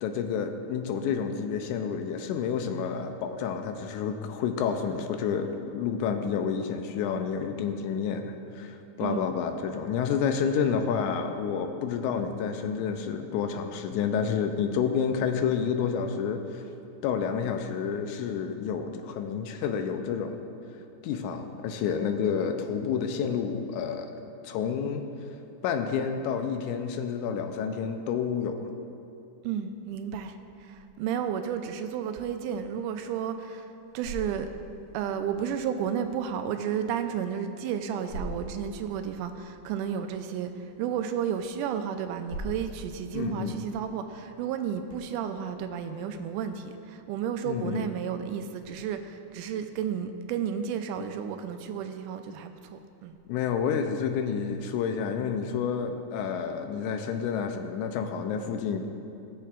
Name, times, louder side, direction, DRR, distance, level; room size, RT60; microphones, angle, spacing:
voice 1, 0.0-16.6 17.0-20.4 21.0-25.0 25.6-28.7 43.1-43.6 47.5-47.9 53.3-58.9, left 7 dB, 80° left, 6 dB, 2.0 m, -29 dB
voice 2, 29.4-34.5 34.9-53.2, right 8 dB, 90° right, 7 dB, 2.1 m, -32 dB
sound 1, 33.6-44.7, equal, 60° left, 2.7 m, -45 dB
18.0 x 6.8 x 2.5 m, 2.6 s
omnidirectional pair, 3.6 m